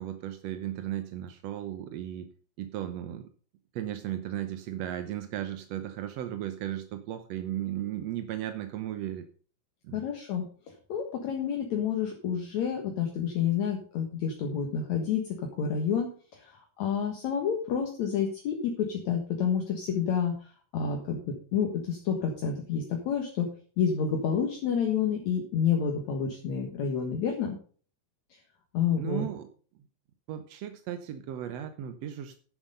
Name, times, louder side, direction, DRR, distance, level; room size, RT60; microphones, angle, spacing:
voice 1, 0.0-2.3 2.6-3.3 3.7-9.3 9.8-10.1 29.0-29.5 30.3-32.4, right 11 dB, 70° right, 8 dB, 1.6 m, -35 dB
voice 2, 9.9-10.5 10.9-20.5 20.7-23.5 23.8-27.6 28.7-29.3, left 7 dB, 60° left, 2 dB, 2.7 m, -29 dB
11.0 x 7.3 x 5.5 m, 0.42 s
omnidirectional pair, 3.9 m